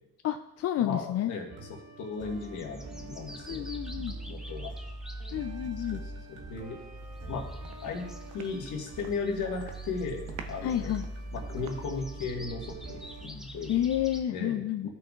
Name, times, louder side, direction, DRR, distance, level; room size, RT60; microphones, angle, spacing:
voice 1, 0.2-1.3 3.5-4.1 5.3-6.0 10.6-11.0 13.7-14.9, left 11 dB, 55° left, 7 dB, 0.4 m, -30 dB
voice 2, 0.8-1.5 2.0-3.7 3.9-4.7 5.6-6.0 6.3-6.8 7.3-8.0 8.3-10.9 11.3-13.8 14.3-14.9, left 4 dB, 80° left, 1 dB, 1.6 m, -36 dB
sound 1, 1.5-13.3, right 3 dB, 55° right, 1.1 m, -49 dB
sound 2, 2.2-14.2, right 1 dB, ahead, 0.7 m, -42 dB
sound 3, 7.1-7.3 7.6-9.3 9.6-9.9 10.3-12.1, right 7 dB, 80° right, 0.8 m, -48 dB
13.5 x 5.8 x 2.4 m, 0.85 s
cardioid pair, 90°, 30 cm